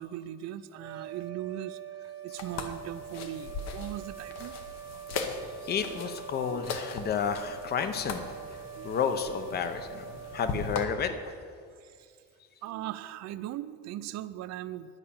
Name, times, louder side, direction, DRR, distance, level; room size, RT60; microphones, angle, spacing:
voice 1, 0.0-4.5 5.8-6.0 6.5-6.7 8.8-8.9 11.7-12.1 12.6-15.0, right 12 dB, 60° right, 14 dB, 0.5 m, -39 dB
sound 1, 0.7-11.4, right 9 dB, 15° right, 0.5 m, -44 dB
sound 2, 2.4-10.8, left 4 dB, 60° left, 1.0 m, -39 dB
voice 2, 5.6-8.4 8.8-10.0 10.3-11.1, left 7 dB, 35° left, 9 dB, 0.7 m, -31 dB
10.5 x 5.6 x 8.6 m, 2.1 s
cardioid pair, 160°, 30 cm